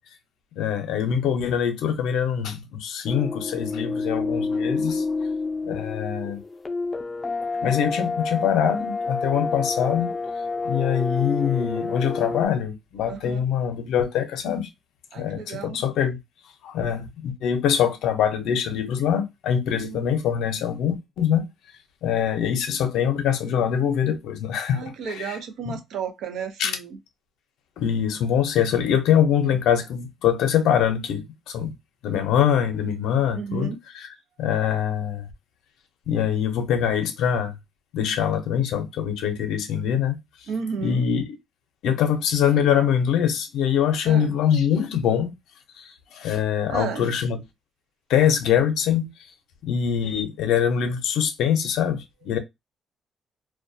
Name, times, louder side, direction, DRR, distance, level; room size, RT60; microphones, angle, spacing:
voice 1, 0.6-5.0 5.6-6.4 7.6-10.1 10.6-14.7 15.2-16.2 16.6-21.5 22.0-25.4 25.7-25.8 26.6-26.7 27.8-31.7 32.0-34.1 34.4-35.3 36.1-37.6 37.9-40.2 40.8-41.2 41.8-45.3 45.8-47.4 48.1-49.1 49.6-52.4, left 8 dB, 85° left, 0.5 m, -23 dB
sound 1, 3.1-12.5, left 3 dB, 25° left, 0.4 m, -28 dB
voice 2, 13.1-13.4 15.1-15.8 19.7-20.0 24.7-27.0 29.4-29.6 33.3-33.8 40.5-41.1 44.0-44.3 46.7-47.1 50.0-50.2, right 6 dB, 80° right, 0.5 m, -33 dB
2.2 x 2.2 x 2.6 m
cardioid pair, 90°, 0 cm